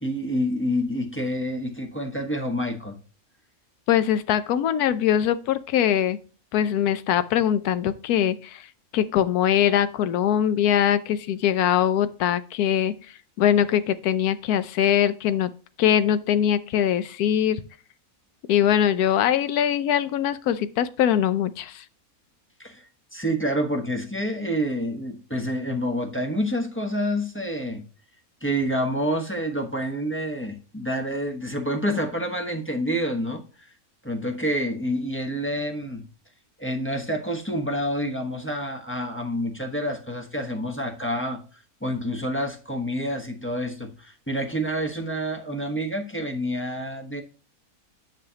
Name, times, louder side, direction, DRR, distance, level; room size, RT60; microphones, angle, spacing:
voice 1, 0.0-3.0 22.6-27.8 28.4-33.7 34.0-36.0 36.6-41.4 41.8-47.2, equal, 10° left, 0.9 m, -28 dB
voice 2, 3.9-6.2 6.5-8.7 8.9-12.9 13.4-15.5 15.8-17.6 18.5-21.8, left 10 dB, 90° left, 1.1 m, -22 dB
10.0 x 5.6 x 2.8 m
omnidirectional pair, 1.6 m